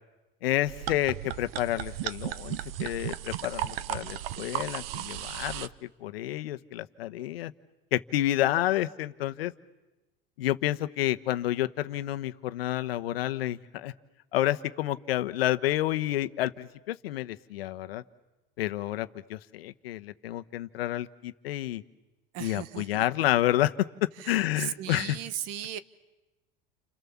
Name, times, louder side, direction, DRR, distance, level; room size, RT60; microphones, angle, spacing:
voice 1, 0.4-7.5 7.9-9.5 10.4-13.9 14.3-18.0 18.6-21.8 22.4-23.9 24.3-25.2, left 14 dB, 90° left, 11 dB, 1.1 m, -29 dB
sound 1, 0.7-5.7, right 13 dB, 80° right, 0.9 m, -35 dB
voice 2, 22.3-23.0 24.2-25.8, right 11 dB, 60° right, 15 dB, 1.4 m, -37 dB
29.5 x 26.5 x 7.2 m, 1.1 s
supercardioid pair, 105°, 29 cm